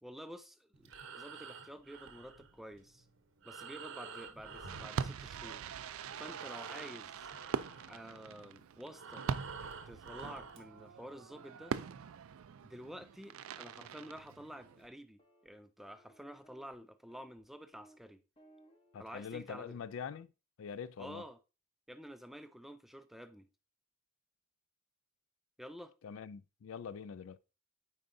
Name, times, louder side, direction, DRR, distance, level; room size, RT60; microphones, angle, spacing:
voice 1, 0.0-3.1 3.4-5.7 6.2-7.3 7.9-9.3 9.9-11.8 12.6-18.2 19.0-19.8 21.0-21.4 21.9-23.5 25.6-25.9, equal, ahead, 0.3 m, -50 dB
Breathing, 0.7-5.7 6.0-10.7, right 5 dB, 65° right, 0.8 m, -49 dB
Fireworks, 4.7-14.9, right 6 dB, 80° right, 0.4 m, -43 dB
sound 1, 14.5-14.9 15.2-15.5 15.8-16.8 17.1-17.4 17.7-18.0 18.4-19.0, right 1 dB, 25° left, 0.9 m, -64 dB
voice 2, 18.9-20.3 20.6-21.2 26.0-27.4, left 6 dB, 75° left, 0.4 m, -44 dB
8.8 x 4.7 x 2.6 m
head